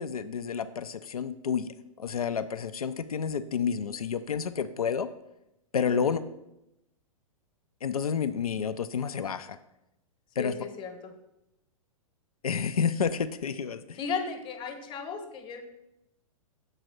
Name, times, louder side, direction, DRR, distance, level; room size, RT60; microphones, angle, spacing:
voice 1, 0.0-5.1 5.7-6.2 7.8-9.6 10.4-10.5 12.4-14.0, left 6 dB, 85° left, 12 dB, 0.4 m, -30 dB
voice 2, 5.8-6.2 10.4-11.1 13.9-15.6, left 5 dB, 25° left, 6 dB, 1.0 m, -36 dB
6.6 x 4.0 x 6.1 m, 0.88 s
figure-of-eight pair, 105°, 18 cm